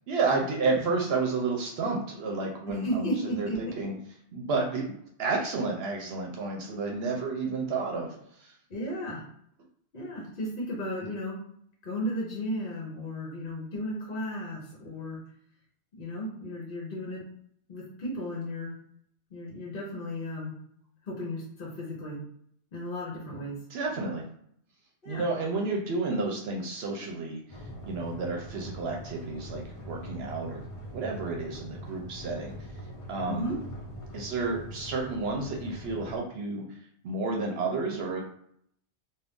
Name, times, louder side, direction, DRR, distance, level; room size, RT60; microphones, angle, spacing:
voice 1, 0.1-3.9 4.3-4.9 5.2-8.5 23.7-24.2 25.1-30.6 30.9-32.6 33.1-33.5 34.1-36.7 37.0-38.2, right 3 dB, 70° right, 1 dB, 0.8 m, -31 dB
voice 2, 2.8-3.7 8.7-9.2 9.9-11.4 11.8-15.2 16.0-17.2 17.7-18.7 19.3-20.5 21.0-22.2 22.7-23.6 25.0-25.2 33.2-33.6, equal, 55° left, -3 dB, 0.9 m, -34 dB
sound 1, 27.5-36.2, equal, 40° left, 0.5 m, -42 dB
2.4 x 2.3 x 3.5 m, 0.69 s
omnidirectional pair, 1.1 m